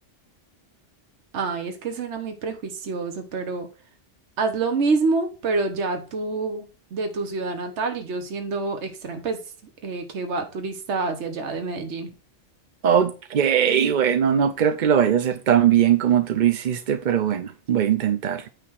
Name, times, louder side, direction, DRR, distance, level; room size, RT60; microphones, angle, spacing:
voice 1, 1.3-3.7 4.4-9.4 9.8-12.1, right 3 dB, 70° right, 1.4 m, -27 dB
voice 2, 12.8-18.5, right 9 dB, 50° right, 0.6 m, -20 dB
9.0 x 3.4 x 6.3 m
omnidirectional pair, 1.3 m